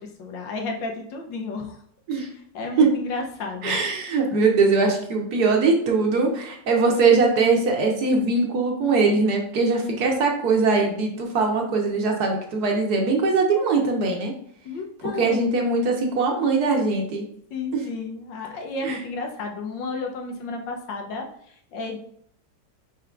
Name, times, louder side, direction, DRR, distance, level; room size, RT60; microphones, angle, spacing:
voice 1, 0.0-1.8 2.2-3.8 14.6-15.4 17.5-22.0, left 3 dB, 85° left, 2 dB, 1.5 m, -32 dB
voice 2, 3.6-14.3 15.0-17.2 17.7-17.8 18.8-19.0, right 4 dB, 65° right, 1 dB, 1.3 m, -21 dB
5.0 x 4.4 x 2.4 m, 0.64 s
omnidirectional pair, 2.0 m